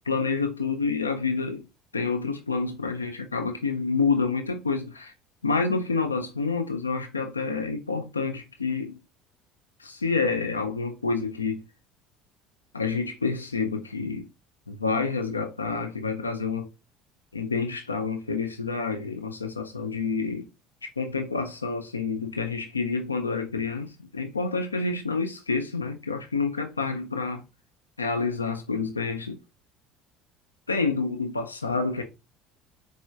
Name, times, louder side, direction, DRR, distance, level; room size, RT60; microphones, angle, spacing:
voice 1, 0.1-1.6 1.9-5.1 5.4-9.0 9.8-11.6 12.7-14.3 14.7-16.7 17.3-20.5 21.0-27.4 28.0-29.4 30.7-32.0, left 4 dB, 80° left, 0.3 m, -28 dB
4.4 x 2.4 x 2.2 m
figure-of-eight pair, 60°, 0 cm